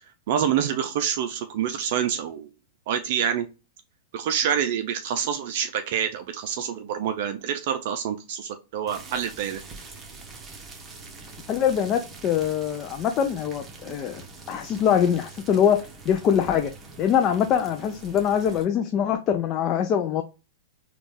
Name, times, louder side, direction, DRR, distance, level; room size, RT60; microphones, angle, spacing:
voice 1, 0.3-2.5 2.9-3.5 4.1-9.6, right 8 dB, 55° right, 8 dB, 0.4 m, -27 dB
sound 1, 8.9-18.6, right 3 dB, 20° right, 1.0 m, -44 dB
voice 2, 11.5-14.2 14.5-16.7 17.0-20.2, left 8 dB, 35° left, 5 dB, 0.4 m, -23 dB
4.0 x 2.3 x 3.3 m, 0.30 s
hypercardioid pair, 110°, 0 cm